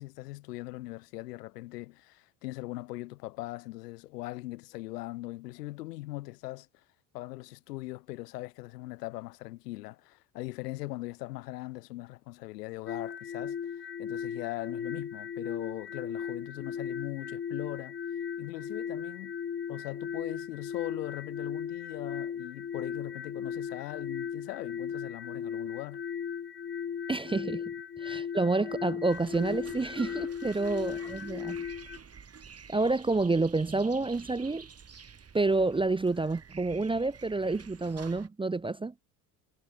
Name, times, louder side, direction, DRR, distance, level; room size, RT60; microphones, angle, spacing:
voice 1, 0.0-6.7 7.1-13.6 14.0-18.0 18.4-19.3 19.7-26.0, left 19 dB, 90° left, 2.8 m, -40 dB
sound 1, 12.9-32.0, left 7 dB, 25° left, 0.8 m, -37 dB
voice 2, 27.1-27.6 28.0-31.6 32.7-34.7 35.3-38.9, right 3 dB, 10° right, 0.5 m, -29 dB
sound 2, 29.1-38.3, right 6 dB, 30° right, 3.6 m, -50 dB
supercardioid pair, 75°, 46 cm